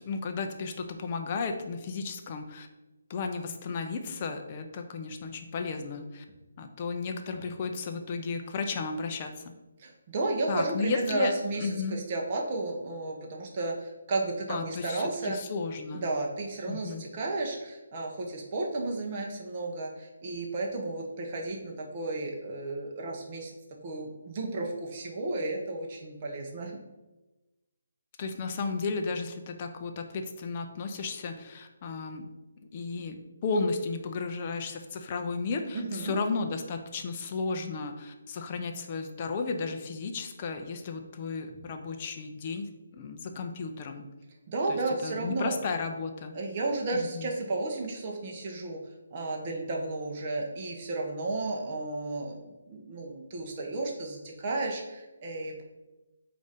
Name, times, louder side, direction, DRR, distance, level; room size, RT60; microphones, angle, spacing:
voice 1, 0.0-2.7 3.1-6.2 6.6-9.5 10.5-11.3 11.6-12.0 14.5-16.0 16.7-17.1 28.2-32.3 32.7-44.1 44.7-46.4 46.9-47.3, left 4 dB, 30° left, 5 dB, 0.4 m, -34 dB
voice 2, 9.8-15.4 16.0-23.5 23.8-26.8 35.7-36.1 44.5-45.6 46.3-48.8 49.1-55.6, right 2 dB, 30° right, 0 dB, 0.6 m, -33 dB
4.7 x 2.5 x 4.0 m, 1.1 s
hypercardioid pair, 165°, 0 cm